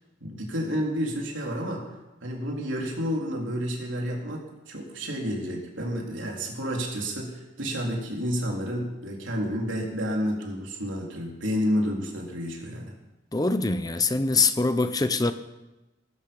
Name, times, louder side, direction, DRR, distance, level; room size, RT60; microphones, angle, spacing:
voice 1, 0.2-1.8 2.2-13.0, equal, 85° right, -1 dB, 3.7 m, -30 dB
voice 2, 13.3-15.3, left 3 dB, 20° left, 11 dB, 0.7 m, -23 dB
20.0 x 11.5 x 5.4 m, 1.0 s
head